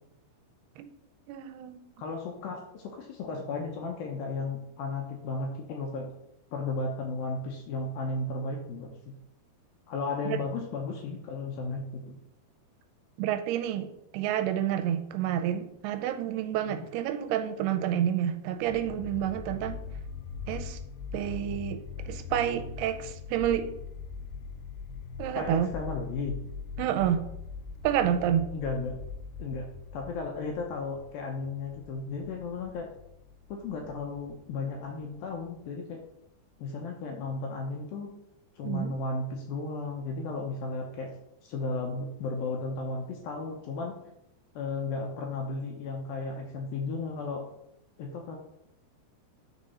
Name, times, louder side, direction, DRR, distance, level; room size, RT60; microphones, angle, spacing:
voice 1, 1.3-1.8 10.3-10.4 13.2-19.8 20.5-20.8 21.1-23.7 25.2-25.7 26.8-27.3 27.8-28.5 38.6-39.0, right 10 dB, 85° right, 9 dB, 2.5 m, -29 dB
voice 2, 2.0-6.1 6.5-9.1 9.9-12.2 16.7-16.9 25.4-26.4 28.5-29.0 29.4-29.7 29.9-32.9 33.5-36.0 36.6-38.1 38.6-41.1 41.4-44.0 44.6-47.5 48.0-48.4, left 3 dB, 75° left, 1 dB, 2.3 m, -34 dB
sound 1, 18.6-35.7, left 5 dB, 90° left, 2.9 m, -42 dB
10.5 x 4.0 x 4.2 m, 0.80 s
omnidirectional pair, 4.8 m